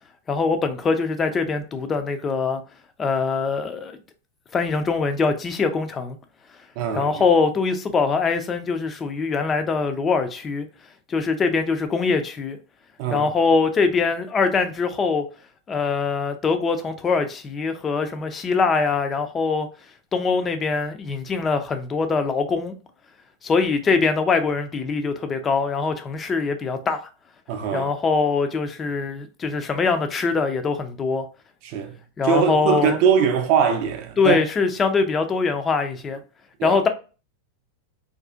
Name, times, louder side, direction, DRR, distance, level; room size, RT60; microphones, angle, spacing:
voice 1, 0.3-2.6 3.0-4.0 4.5-6.2 7.0-10.7 11.1-12.6 13.1-15.3 15.7-19.7 20.1-22.7 23.4-27.0 27.7-31.3 32.2-33.0 34.2-36.2 36.6-36.9, left 4 dB, 20° left, 0.4 m, -23 dB
voice 2, 6.8-7.2 13.0-13.3 27.5-27.9 31.6-34.4 36.6-36.8, right 7 dB, 45° right, 0.5 m, -22 dB
2.5 x 2.3 x 2.3 m
figure-of-eight pair, 90°, 0 cm